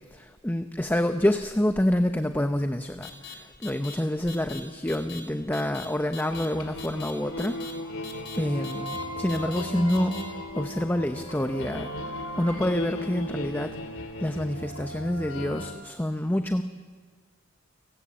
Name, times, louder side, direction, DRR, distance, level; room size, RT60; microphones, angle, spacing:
voice 1, 0.1-7.6 8.3-10.1 10.5-11.9 12.4-13.7 14.2-16.6, left 1 dB, 10° left, 7 dB, 0.8 m, -27 dB
sound 1, 3.0-3.3 3.6-3.9 4.3-4.6 4.9-5.2 5.5-5.8 6.1-6.5 6.8-7.1 7.4-7.7 8.0-8.4 8.6-9.0 9.3-9.6 9.9-10.2, left 8 dB, 55° left, 4.0 m, -41 dB
sound 2, 6.3-15.7, equal, 80° left, 3.2 m, -36 dB
29.5 x 18.5 x 8.8 m, 1.5 s
head